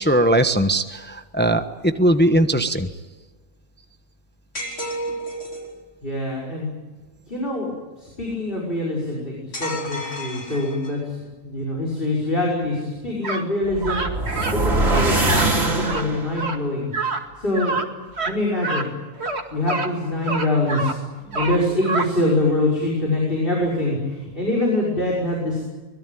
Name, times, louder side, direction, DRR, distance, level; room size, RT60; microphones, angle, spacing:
voice 1, 0.0-2.9, right 1 dB, 10° left, 8 dB, 1.1 m, -19 dB
sound 1, 4.5-5.7 9.5-11.1, equal, 65° left, 5.4 m, -31 dB
voice 2, 6.0-6.7 7.3-7.7 8.0-11.2 11.4-16.9 17.4-17.8 18.3-18.9 19.5-21.0 21.3-25.7, left 1 dB, 40° left, -2 dB, 6.0 m, -24 dB
sound 2, 13.2-13.5 13.8-14.6 14.8-15.5 15.8-16.0 16.4-16.6 16.9-17.2 17.5-17.9 18.1-18.3 18.6-18.9 19.2-19.9 20.3-21.0 21.3-22.1, right 3 dB, 50° right, 2.6 m, -26 dB
sound 3, 13.6-16.5, right 2 dB, 85° right, 4.2 m, -22 dB
24.5 x 21.5 x 9.2 m, 1.3 s
omnidirectional pair, 1.4 m